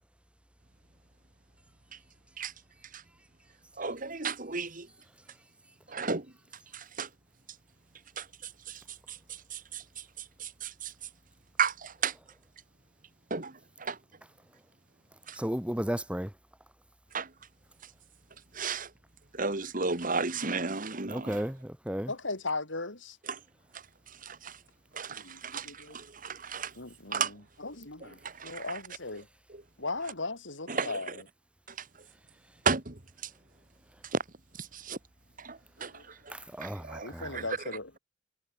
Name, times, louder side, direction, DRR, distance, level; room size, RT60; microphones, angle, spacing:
voice 1, 3.8-4.9 5.9-6.3 6.7-7.1 8.2-8.3 8.7-8.8 9.1-9.2 9.5-9.8 10.4-10.9 11.6-12.1 13.3-14.0 15.3-15.4 17.1-17.3 18.5-18.9 19.3-21.4 23.3-23.4 24.2-24.6 24.9-26.7 27.1-27.3 28.2-28.8 30.7-30.9 32.7-33.0 34.1-34.2 34.6-35.0 35.4-35.9 36.3-36.4 36.6-37.4, right 5 dB, 45° right, 2.2 m, -33 dB
voice 2, 15.3-16.3 21.1-22.1 36.3-37.3, equal, 5° right, 1.4 m, -34 dB
voice 3, 22.1-23.2 25.1-26.0 26.7-29.3 29.8-31.2 35.9-36.0 37.0-38.0, left 3 dB, 80° left, 4.8 m, -38 dB
head